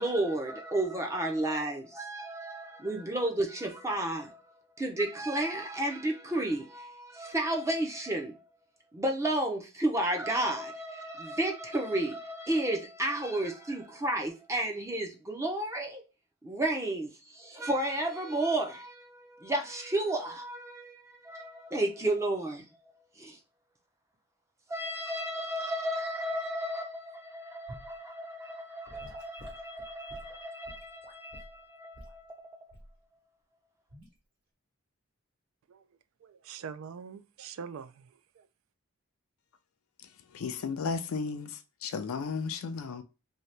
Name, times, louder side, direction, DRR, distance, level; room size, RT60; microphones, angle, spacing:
voice 1, 0.0-8.4 8.9-16.0 16.4-23.4 24.7-33.1, right 1 dB, 15° right, 0.5 m, -32 dB
Gurgling / Sink (filling or washing) / Liquid, 27.7-28.0 28.9-31.6 31.9-32.2 32.7-33.0 33.9-34.1, equal, 55° right, 1.3 m, -49 dB
voice 2, 36.2-38.5, right 6 dB, 70° right, 0.3 m, -44 dB
voice 3, 40.3-43.0, left 5 dB, 80° left, 0.4 m, -34 dB
2.8 x 2.8 x 3.2 m
head